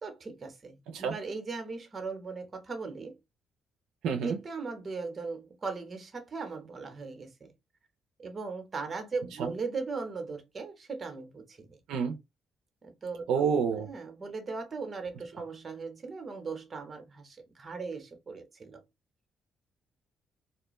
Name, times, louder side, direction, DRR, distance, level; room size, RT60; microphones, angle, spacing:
voice 1, 0.0-3.2 4.2-7.5 8.2-11.8 12.8-13.2 13.8-18.8, right 4 dB, 35° right, 0.9 m, -38 dB
voice 2, 4.0-4.4 9.4-9.5 11.9-12.2 13.3-13.9, right 6 dB, 85° right, 0.4 m, -28 dB
2.5 x 2.1 x 3.0 m
cardioid pair, 90°, 0 cm